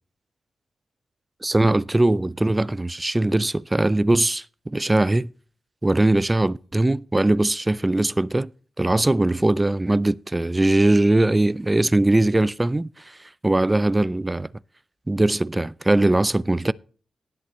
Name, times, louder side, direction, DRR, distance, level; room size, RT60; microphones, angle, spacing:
voice 1, 1.4-5.3 5.8-8.5 8.8-13.2 13.4-14.5 15.1-16.7, right 2 dB, 20° right, 0.4 m, -20 dB
18.5 x 8.2 x 3.0 m
cardioid pair, 60°, 0 cm